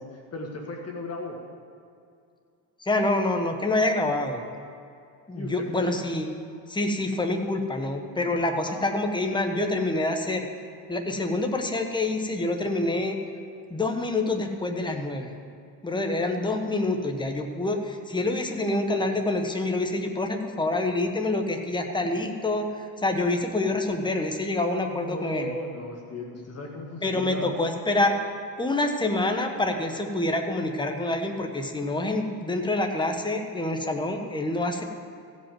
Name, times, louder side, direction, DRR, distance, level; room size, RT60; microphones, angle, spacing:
voice 1, 0.0-1.4 5.4-5.9 8.6-8.9 24.9-27.5, left 2 dB, 35° left, 0 dB, 1.6 m, -36 dB
voice 2, 2.8-4.5 5.3-6.4 6.7-10.5 10.9-13.2 13.7-15.4 15.8-25.5 27.0-28.2 28.6-34.8, left 2 dB, 10° left, 4 dB, 1.2 m, -27 dB
16.0 x 5.4 x 7.7 m, 2.4 s
cardioid pair, 100°, 44 cm